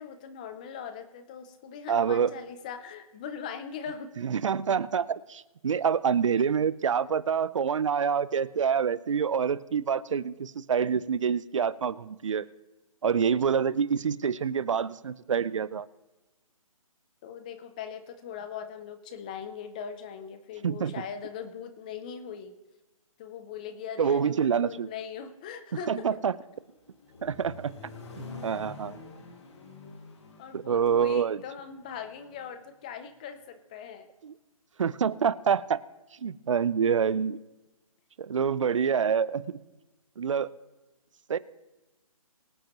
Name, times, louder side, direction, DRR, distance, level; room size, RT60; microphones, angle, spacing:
voice 1, 0.0-4.1 17.2-22.5 23.2-26.1 30.4-34.1, left 7 dB, 15° left, 9 dB, 0.5 m, -40 dB
voice 2, 1.9-2.3 4.2-12.5 13.0-15.9 20.6-20.9 24.0-24.9 25.9-26.4 27.2-27.7 28.2-29.0 30.5-31.4 34.2-34.3 34.8-35.8 36.2-37.4 38.2-39.4 40.2-40.5 41.3-41.4, right 7 dB, 60° right, 18 dB, 0.6 m, -26 dB
Accelerating revving vroom, 26.5-32.5, left 3 dB, 50° left, 2.2 m, -47 dB
23.5 x 7.9 x 3.0 m, 1.1 s
hypercardioid pair, 160°, 19 cm